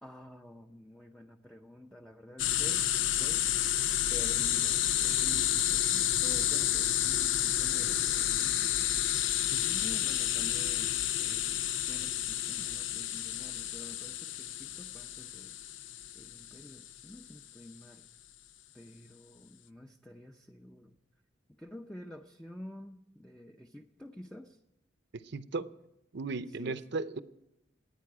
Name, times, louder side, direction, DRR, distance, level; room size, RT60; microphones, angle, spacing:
voice 1, 0.0-3.5 4.1-9.1 9.6-15.5 16.1-18.1 18.7-21.0 21.5-24.6 26.5-26.8, left 1 dB, 5° left, 3 dB, 0.6 m, -49 dB
sound 1, 2.4-16.9, left 12 dB, 75° left, 0.6 m, -30 dB
voice 2, 25.2-25.7 26.1-27.2, right 3 dB, 60° right, 12 dB, 0.7 m, -36 dB
27.5 x 9.6 x 4.9 m, 0.85 s
head